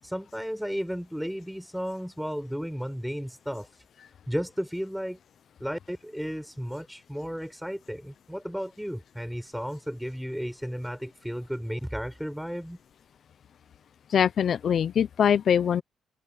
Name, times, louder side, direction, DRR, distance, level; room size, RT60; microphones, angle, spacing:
voice 1, 0.0-3.7 4.3-5.2 5.6-12.8, equal, ahead, 6.8 m, -34 dB
voice 2, 14.1-15.8, left 8 dB, 60° left, 0.9 m, -23 dB
cardioid pair, 90°, 0 cm